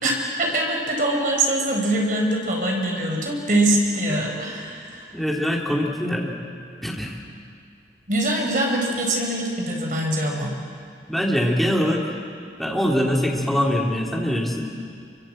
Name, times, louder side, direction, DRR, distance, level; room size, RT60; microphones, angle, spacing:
voice 1, 0.0-5.1 8.1-10.5, right 1 dB, 45° right, 1 dB, 5.0 m, -23 dB
voice 2, 5.1-6.3 6.8-7.1 11.1-12.0 12.6-14.7, equal, ahead, -2 dB, 3.0 m, -23 dB
27.5 x 24.5 x 7.9 m, 2.3 s
head